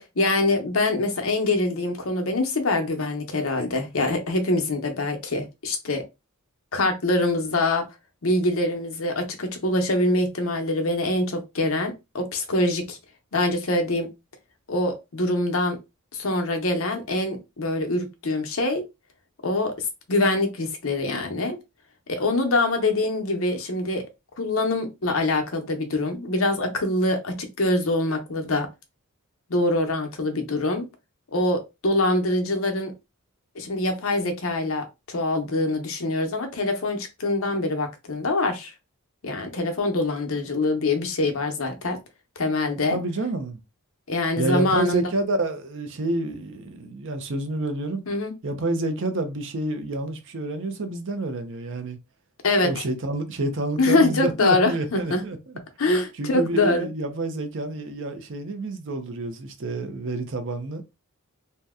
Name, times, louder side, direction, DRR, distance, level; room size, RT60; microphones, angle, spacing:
voice 1, 0.0-6.0 6.7-7.8 8.2-13.0 13.3-14.1 14.7-15.8 16.1-18.8 19.4-19.7 20.1-21.6 22.1-24.0 24.4-28.7 29.5-30.9 31.3-32.9 33.5-38.7 39.2-42.0 42.4-43.0 44.1-45.0 48.1-48.3 52.4-52.8 53.8-55.2 55.8-56.9, left 2 dB, 65° left, 0.8 m, -24 dB
voice 2, 42.9-43.6 44.4-48.0 48.4-52.0 52.6-55.4 56.2-61.0, right 2 dB, 60° right, 0.6 m, -28 dB
2.7 x 2.1 x 3.5 m
head